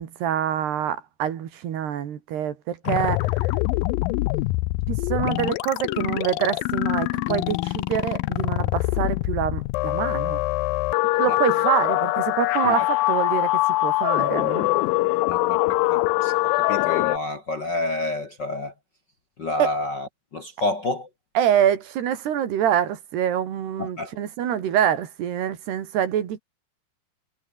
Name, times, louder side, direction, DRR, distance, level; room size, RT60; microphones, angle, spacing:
voice 1, 0.0-3.5 4.9-10.4 11.2-14.7 19.6-19.7 21.4-26.4, right 9 dB, 85° right, 4.6 m, -25 dB
sound 1, 2.9-17.2, left 19 dB, 80° left, 2.1 m, -24 dB
voice 2, 15.3-18.7 19.4-21.1 23.8-24.1, left 2 dB, 40° left, 1.6 m, -29 dB
omnidirectional pair, 4.6 m